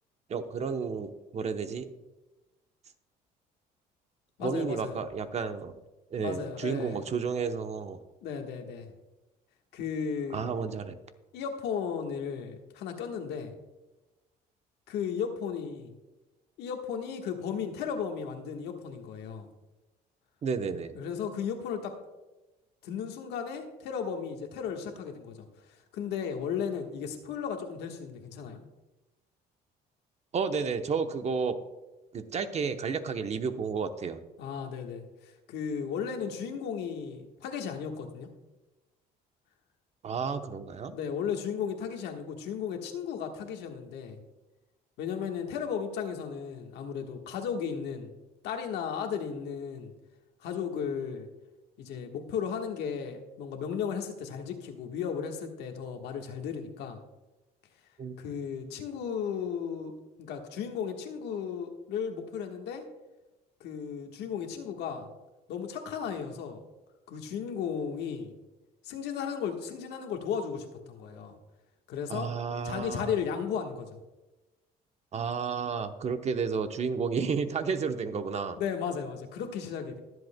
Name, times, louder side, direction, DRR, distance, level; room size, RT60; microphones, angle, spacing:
voice 1, 0.3-1.9 4.4-5.8 6.1-8.0 10.3-11.0 20.4-20.9 30.3-31.6 32.1-34.2 40.0-40.9 58.0-58.2 72.1-73.2 75.1-78.6, right 5 dB, 40° right, 8 dB, 0.8 m, -31 dB
voice 2, 4.4-5.0 6.2-7.0 8.2-8.9 9.7-10.6 11.3-13.5 14.9-15.9 16.6-19.5 20.9-22.0 22.8-25.5 25.9-28.6 34.4-38.3 40.9-44.2 45.0-48.1 48.4-49.9 50.4-51.3 51.8-57.0 58.2-59.9 60.2-62.8 63.6-65.1 65.5-66.6 67.1-68.3 68.8-71.3 71.9-72.3 72.6-74.0 78.6-80.0, left 7 dB, 80° left, 4 dB, 1.4 m, -35 dB
21.5 x 7.9 x 2.2 m, 1.1 s
cardioid pair, 110°, 17 cm